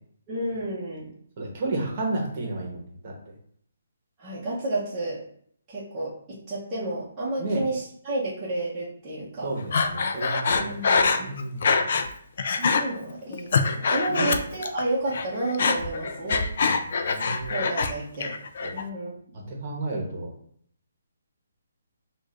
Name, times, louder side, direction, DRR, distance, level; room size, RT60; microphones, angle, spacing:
voice 1, 0.3-1.1 4.2-5.2 5.7-9.5 10.5-11.4 12.6-16.5 17.5-18.4 18.7-19.5, right 2 dB, 15° right, -10 dB, 0.8 m, -31 dB
voice 2, 1.4-3.1 7.4-7.6 9.4-11.8 14.1-14.3 16.6-17.5 18.6-18.8 19.6-20.3, right 2 dB, 30° right, -1 dB, 1.0 m, -32 dB
Breathing, 9.7-12.1 12.4-12.8 13.3-14.8 15.1-17.9 18.2-18.8, left 4 dB, 45° left, 0.4 m, -24 dB
6.1 x 2.5 x 2.5 m, 0.63 s
hypercardioid pair, 170°, 0 cm